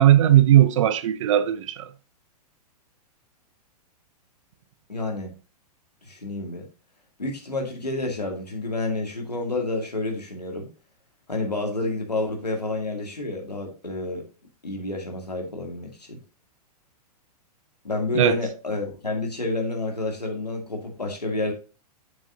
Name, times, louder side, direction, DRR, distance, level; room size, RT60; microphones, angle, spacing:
voice 1, 0.0-1.9 18.1-18.3, right 12 dB, 50° right, 0.6 m, -17 dB
voice 2, 4.9-5.3 6.0-6.7 7.2-10.7 11.3-14.2 14.6-16.2 17.8-21.5, left 2 dB, 85° left, 2.1 m, -29 dB
8.3 x 6.2 x 2.8 m
figure-of-eight pair, 105°, 20 cm